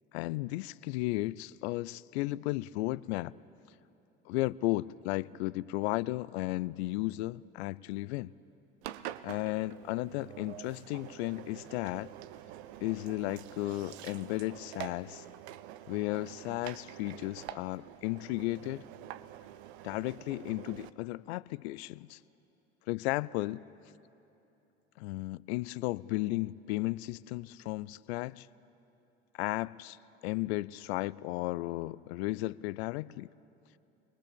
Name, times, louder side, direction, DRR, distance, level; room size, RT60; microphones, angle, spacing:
voice 1, 0.1-3.3 4.3-8.3 9.2-12.1 12.8-15.2 15.9-18.9 19.8-22.2 22.9-23.6 25.0-28.5 29.3-30.0 30.2-33.3, left 19 dB, 75° left, 0.5 m, -34 dB
Engine, 8.8-20.9, right 13 dB, 80° right, 0.7 m, -47 dB
22.0 x 21.0 x 6.9 m
hypercardioid pair, 60°, 32 cm